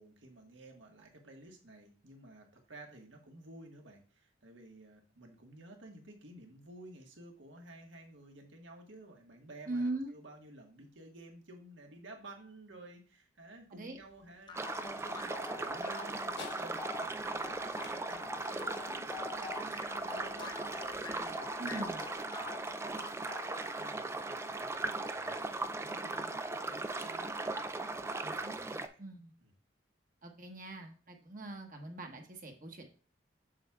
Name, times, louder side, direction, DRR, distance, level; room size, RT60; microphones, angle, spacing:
voice 1, 0.0-22.5 22.8-25.3 25.8-29.0 29.4-29.5, right 1 dB, 75° right, 2 dB, 1.5 m, -54 dB
voice 2, 9.7-10.1 13.7-14.0 21.6-22.0 28.2-28.6 29.0-29.3 30.2-32.8, right 2 dB, 45° right, 3 dB, 1.3 m, -41 dB
sound 1, 13.4-21.6, left 4 dB, 60° left, 1.6 m, -57 dB
sound 2, 14.5-23.8, left 5 dB, 25° left, 0.8 m, -47 dB
sound 3, 14.5-28.9, right 2 dB, 15° right, 0.3 m, -38 dB
7.5 x 7.1 x 2.4 m, 0.40 s
head